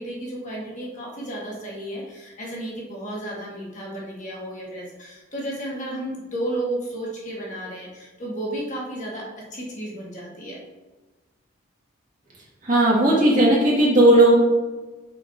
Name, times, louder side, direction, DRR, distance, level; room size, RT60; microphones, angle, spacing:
voice 1, 0.0-9.2 9.5-10.6, right 1 dB, 35° left, -4 dB, 1.5 m, -33 dB
voice 2, 12.6-14.3, right 1 dB, 40° right, -6 dB, 2.0 m, -16 dB
6.4 x 6.3 x 2.8 m, 1.2 s
head